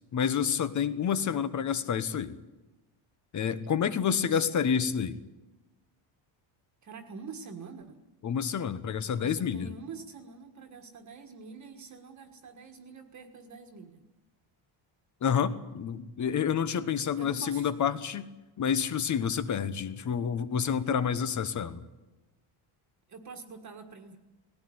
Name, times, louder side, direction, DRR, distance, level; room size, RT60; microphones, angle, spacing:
voice 1, 0.1-2.3 3.3-5.2 8.2-9.7 15.2-18.3 18.6-21.8, left 7 dB, 35° left, 13 dB, 1.1 m, -29 dB
voice 2, 4.0-4.5 6.8-8.0 9.2-14.0 17.2-17.7 23.1-24.2, right 5 dB, 35° right, 5 dB, 1.7 m, -46 dB
19.5 x 17.5 x 9.6 m, 1.1 s
cardioid pair, 165°, 50 cm